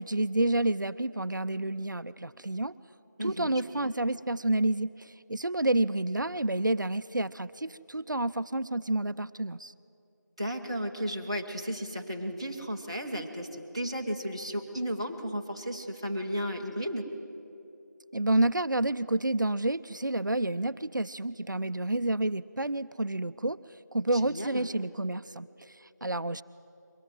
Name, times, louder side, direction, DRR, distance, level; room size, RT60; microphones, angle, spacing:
voice 1, 0.0-2.7 3.2-9.7 18.1-23.6 23.9-26.4, right 1 dB, 80° right, 14 dB, 0.6 m, -29 dB
voice 2, 3.2-3.9 10.4-17.0 24.1-24.7, equal, 15° right, -3 dB, 1.1 m, -34 dB
23.0 x 18.5 x 7.9 m, 2.7 s
figure-of-eight pair, 175°, 10 cm